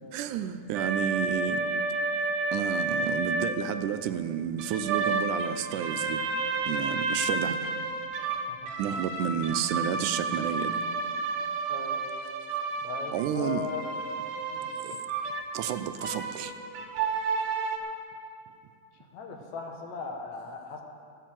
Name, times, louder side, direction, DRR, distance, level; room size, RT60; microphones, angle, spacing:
voice 1, 0.1-1.7 2.5-6.2 6.7-7.7 8.8-10.8 13.1-13.7 14.8-15.0 15.5-16.5, right 9 dB, 90° right, 11 dB, 2.2 m, -31 dB
sound 1, 0.7-3.6 4.6-17.8, right 3 dB, 65° right, 2.2 m, -31 dB
voice 2, 11.7-12.0 12.8-14.0 14.5-14.7 19.1-20.8, left 5 dB, 70° left, 2 dB, 2.5 m, -38 dB
14.0 x 9.6 x 7.6 m, 2.5 s
omnidirectional pair, 3.5 m